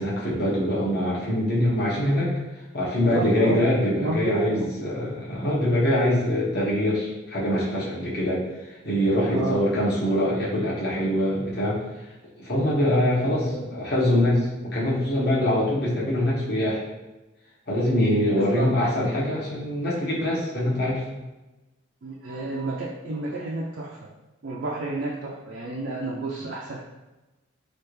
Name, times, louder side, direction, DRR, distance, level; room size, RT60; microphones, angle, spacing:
voice 1, 0.0-2.3 2.7-8.4 8.8-11.8 12.4-16.8 17.7-21.0, left 1 dB, 50° left, -7 dB, 1.0 m, -24 dB
voice 2, 2.9-3.6 4.0-4.7 9.3-9.6 13.5-13.6 18.3-18.6 22.0-24.0 24.4-26.8, right 2 dB, 60° right, -3 dB, 0.4 m, -30 dB
3.2 x 2.5 x 3.1 m, 1.1 s
head